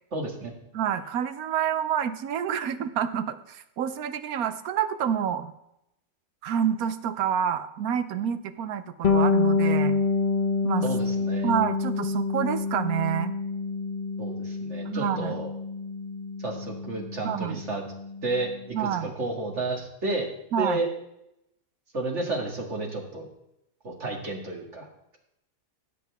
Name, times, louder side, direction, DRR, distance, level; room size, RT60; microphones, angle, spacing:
voice 1, 0.1-0.5 10.8-11.5 14.2-15.5 16.4-17.8 18.2-18.5 18.8-20.3 20.6-20.9 21.9-23.3 23.8-24.9, right 2 dB, 55° right, 1 dB, 2.3 m, -31 dB
voice 2, 0.7-5.5 6.4-10.0 10.6-10.8 11.4-13.3 14.9-15.3 17.2-17.6 18.7-19.1 20.5-20.8, right 8 dB, 85° right, 12 dB, 1.2 m, -28 dB
Bass guitar, 9.0-18.6, left 4 dB, 40° left, 0.9 m, -27 dB
16.5 x 8.0 x 3.5 m, 0.83 s
omnidirectional pair, 1.5 m